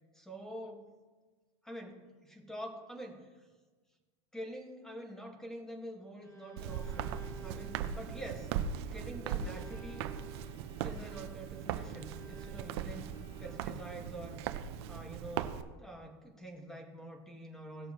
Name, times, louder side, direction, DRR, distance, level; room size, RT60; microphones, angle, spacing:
voice 1, 0.1-0.9 1.6-3.5 4.3-8.5 8.9-10.1 10.8-13.1 13.4-14.4 14.9-17.9, right 1 dB, 5° left, 3 dB, 1.7 m, -46 dB
Bowed string instrument, 6.0-14.0, left 1 dB, 20° left, 2.4 m, -55 dB
Walk footsteps, 6.6-15.6, right 9 dB, 75° right, 0.7 m, -39 dB
17.5 x 6.7 x 3.0 m, 1.3 s
supercardioid pair, 130°, 14 cm